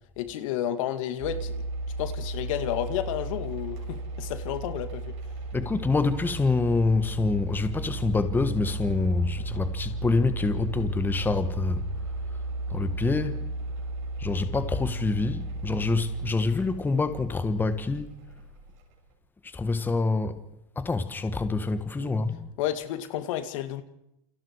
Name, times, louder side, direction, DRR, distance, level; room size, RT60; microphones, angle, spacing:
voice 1, 0.2-1.5 2.0-5.2 22.0-22.2 22.6-23.8, left 11 dB, 70° left, 2.2 m, -31 dB
sound 1, 1.2-19.0, right 2 dB, 70° right, 6.8 m, -35 dB
voice 2, 5.5-11.8 12.7-13.5 14.2-18.2 19.4-20.4 20.7-22.5, left 3 dB, 10° left, 1.4 m, -26 dB
29.0 x 28.5 x 4.7 m
supercardioid pair, 130°, 17 cm